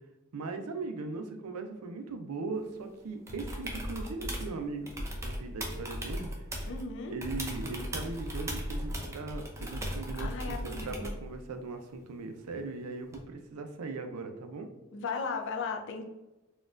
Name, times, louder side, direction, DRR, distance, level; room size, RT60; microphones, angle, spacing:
voice 1, 0.3-4.9 5.2-6.3 7.1-14.7, right 3 dB, 80° right, 6 dB, 0.5 m, -39 dB
sound 1, 3.3-4.5 4.9-6.8 7.2-11.2 13.1-13.2, equal, 15° right, 0.4 m, -37 dB
voice 2, 6.7-7.1 10.2-11.1 14.9-16.0, left 4 dB, 55° left, 3 dB, 0.4 m, -36 dB
4.1 x 2.3 x 2.4 m, 1.1 s
head